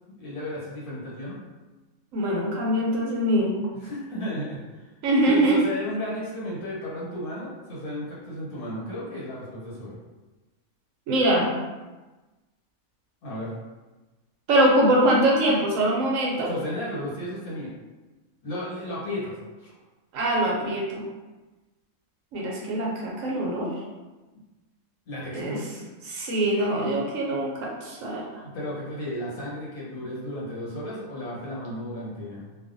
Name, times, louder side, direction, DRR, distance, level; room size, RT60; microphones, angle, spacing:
voice 1, 0.2-1.4 3.8-4.8 5.3-10.0 13.2-13.5 16.4-17.7 18.4-19.3 19.6-19.7 25.1-25.7 28.5-32.5, left 1 dB, 80° left, -7 dB, 1.4 m, -33 dB
voice 2, 2.1-3.5 5.0-5.6 11.1-11.5 14.5-16.5 20.1-21.0 22.3-23.7 25.3-25.6 26.1-28.2, right 1 dB, 70° right, -3 dB, 0.9 m, -23 dB
2.5 x 2.3 x 2.5 m, 1.2 s
omnidirectional pair, 1.5 m